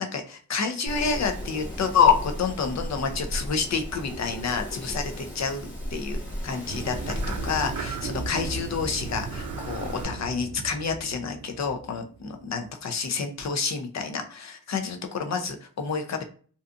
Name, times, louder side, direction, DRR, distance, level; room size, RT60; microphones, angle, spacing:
voice 1, 0.0-16.2, left 5 dB, 50° left, 6 dB, 0.6 m, -28 dB
Wind, 0.9-10.0, equal, 30° left, 1.2 m, -36 dB
sound 1, 6.7-12.7, right 4 dB, 65° right, 0.5 m, -36 dB
2.6 x 2.4 x 2.4 m, 0.43 s
cardioid pair, 55°, 35 cm